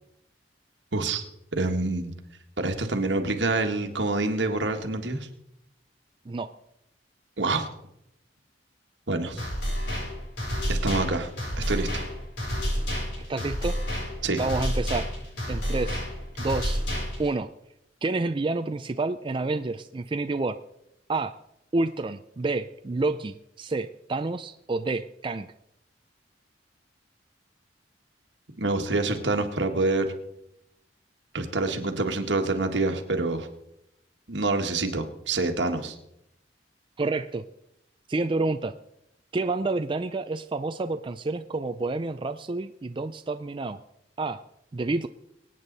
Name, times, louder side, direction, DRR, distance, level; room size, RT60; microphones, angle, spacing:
voice 1, 0.9-1.2 1.5-2.1 2.6-5.3 7.4-7.7 9.1-9.4 10.7-11.3 11.6-12.0 14.2-14.4 28.6-30.1 31.3-33.5 34.3-36.0, right 2 dB, 75° right, 5 dB, 1.7 m, -26 dB
sound 1, 9.4-17.4, equal, 85° left, 6.7 m, -30 dB
voice 2, 13.3-13.8 14.4-15.1 15.5-16.1 16.4-16.8 17.2-17.5 18.0-20.6 21.1-21.3 21.7-25.5 37.0-37.4 38.1-38.8 39.3-43.8 44.2-44.4 44.7-45.1, right 3 dB, 30° right, 8 dB, 0.4 m, -29 dB
24.0 x 9.1 x 4.1 m, 0.83 s
head